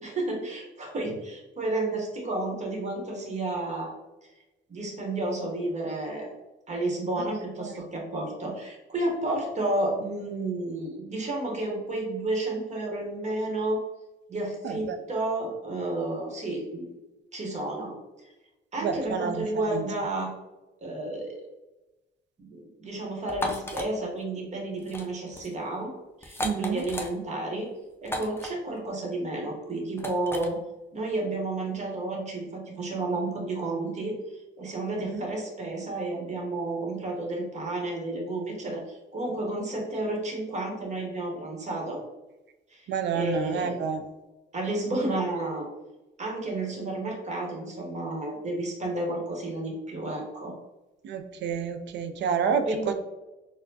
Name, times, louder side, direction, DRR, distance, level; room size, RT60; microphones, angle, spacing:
voice 1, 0.0-3.9 4.7-6.3 6.7-13.8 14.3-16.9 17.3-17.9 18.7-20.3 20.8-21.4 22.4-25.9 26.2-27.7 28.0-30.6 30.9-42.0 42.7-42.9 43.1-43.9 44.5-45.7 46.2-50.5 52.6-52.9, right 2 dB, 35° right, -1 dB, 1.1 m, -31 dB
voice 2, 14.6-15.0 18.8-19.9 26.4-26.8 35.1-35.2 42.9-44.0 51.0-52.9, right 6 dB, 65° right, 8 dB, 0.4 m, -29 dB
sound 1, 23.3-23.9 24.8-25.1 25.3-25.5 26.2-27.1 28.0-28.5 30.0-30.5, left 1 dB, 10° left, 0.5 m, -34 dB
4.1 x 2.1 x 2.7 m, 1.1 s
cardioid pair, 90°, 20 cm